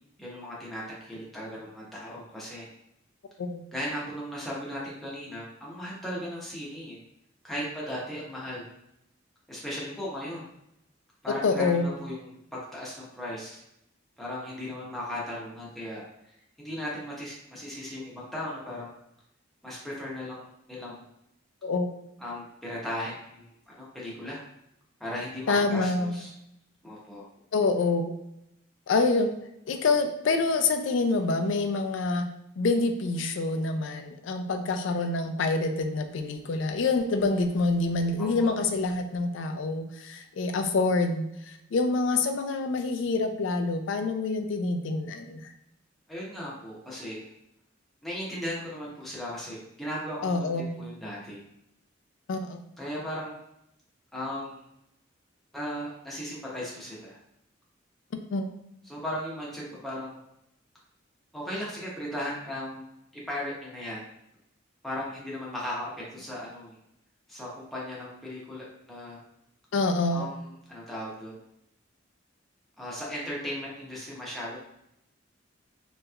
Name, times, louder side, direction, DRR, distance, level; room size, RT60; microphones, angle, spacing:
voice 1, 0.2-2.7 3.7-7.0 7.4-8.6 9.5-10.4 11.2-13.6 14.2-16.3 16.6-18.9 19.6-21.0 22.2-24.4 25.0-26.3 26.8-27.2 38.2-38.5 46.1-47.3 48.0-51.4 52.8-53.3 54.1-54.7 55.5-57.2 58.8-60.2 61.3-62.9 63.3-64.1 64.8-66.8 67.3-69.2 70.1-71.3 72.8-74.6, left 1 dB, ahead, -6 dB, 0.8 m, -37 dB
voice 2, 11.4-12.0 21.6-21.9 25.5-26.2 27.5-28.1 28.9-29.3 29.7-32.3 32.6-45.5 50.2-50.8 52.3-52.6 58.3-58.5 69.7-70.3, left 3 dB, 70° left, 7 dB, 0.4 m, -26 dB
3.1 x 2.9 x 2.3 m, 0.82 s
head